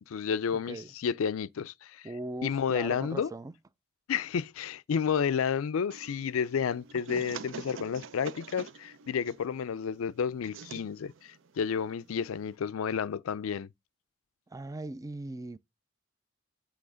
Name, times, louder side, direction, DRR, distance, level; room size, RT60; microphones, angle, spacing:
voice 1, 0.1-2.1 2.4-3.3 4.1-13.7, left 7 dB, 85° left, 0.4 m, -31 dB
voice 2, 2.0-3.5 14.5-15.6, right 2 dB, 15° right, 0.3 m, -39 dB
sound 1, 5.9-12.6, right 5 dB, 65° right, 0.5 m, -46 dB
7.8 x 3.4 x 4.9 m
head